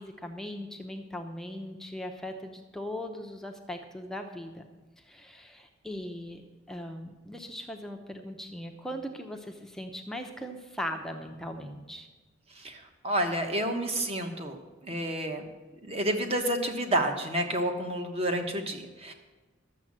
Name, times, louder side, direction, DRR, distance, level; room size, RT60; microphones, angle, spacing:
voice 1, 0.0-4.6 5.0-6.4 6.7-12.1, left 1 dB, 5° left, 3 dB, 0.8 m, -39 dB
voice 2, 12.6-15.4 15.8-19.1, right 1 dB, 30° right, 4 dB, 1.3 m, -30 dB
12.0 x 7.4 x 7.5 m, 1.2 s
head